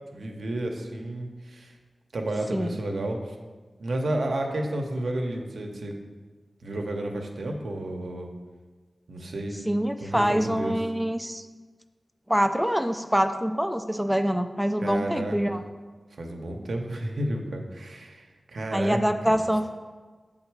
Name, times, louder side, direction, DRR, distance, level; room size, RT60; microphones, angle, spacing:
voice 1, 0.1-1.8 2.1-3.4 3.8-5.9 6.6-8.3 9.1-9.6 10.0-10.9 14.8-15.4 16.1-19.0 19.3-19.4, right 1 dB, 85° right, 2 dB, 0.7 m, -31 dB
voice 2, 9.7-11.4 12.3-15.6 18.7-19.7, equal, ahead, 7 dB, 0.4 m, -25 dB
7.3 x 3.7 x 4.6 m, 1.4 s
wide cardioid pair, 70°, 0 cm